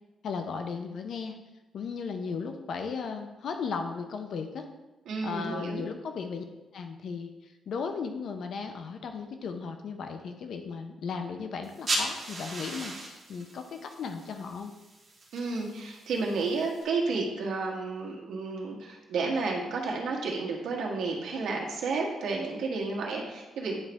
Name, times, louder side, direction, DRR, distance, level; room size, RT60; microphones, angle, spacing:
voice 1, 0.2-1.4 1.7-4.7 5.2-6.4 6.7-14.7, left 5 dB, 50° left, 6 dB, 0.5 m, -36 dB
voice 2, 5.1-5.9 15.3-23.8, right 3 dB, 70° right, -2 dB, 1.5 m, -31 dB
sound 1, 11.6-16.8, right 2 dB, 30° right, 1.9 m, -37 dB
9.6 x 4.0 x 3.5 m, 1.1 s
cardioid pair, 180°, 0 cm